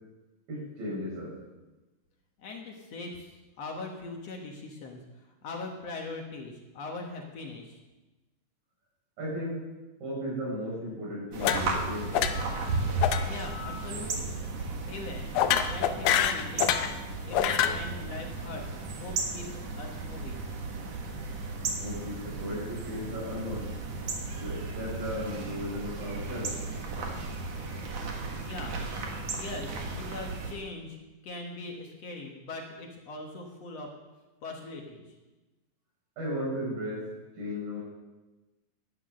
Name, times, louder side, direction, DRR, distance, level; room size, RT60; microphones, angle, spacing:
voice 1, 0.5-1.4 9.2-9.6 10.0-12.1 21.8-23.7 24.4-26.5 36.2-37.0 37.4-37.8, equal, 90° right, -5 dB, 7.4 m, -35 dB
voice 2, 2.4-3.3 3.6-7.8 13.3-14.4 14.9-15.3 15.6-16.8 17.2-20.4 28.4-28.9 29.3-31.0 31.2-33.9 34.4-35.2, left 3 dB, 60° left, 2 dB, 2.1 m, -41 dB
sound 1, 11.3-30.5, right 3 dB, 55° right, 2.4 m, -35 dB
sound 2, 11.4-11.9 12.1-12.6 13.0-13.2 13.5-13.8 15.4-16.9 17.3-17.8, left 9 dB, 80° left, 2.4 m, -26 dB
12.0 x 9.7 x 6.3 m, 1.1 s
omnidirectional pair, 3.9 m